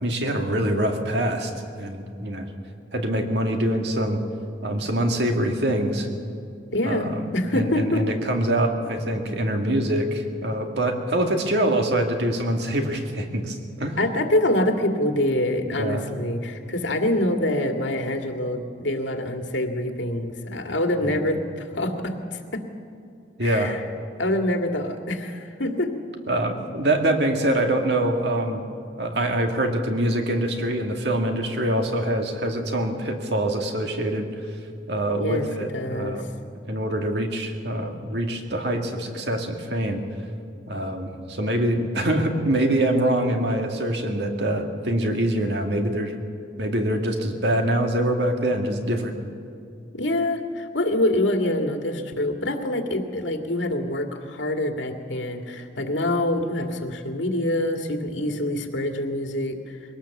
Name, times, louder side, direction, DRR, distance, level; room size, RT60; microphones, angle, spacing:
voice 1, 0.0-1.5 1.8-2.5 2.9-4.2 4.6-6.1 6.8-14.0 15.7-16.0 21.0-21.2 23.4-23.8 26.3-28.6 29.0-34.3 34.9-36.3 36.7-40.0 40.7-46.1 46.6-49.1, right 1 dB, 65° right, 3 dB, 2.2 m, -24 dB
voice 2, 6.7-8.1 14.0-22.6 23.4-23.8 24.2-25.9 35.2-35.5 35.7-36.3 49.9-59.8, left 1 dB, 80° left, 4 dB, 2.1 m, -25 dB
22.0 x 18.0 x 7.2 m, 2.5 s
head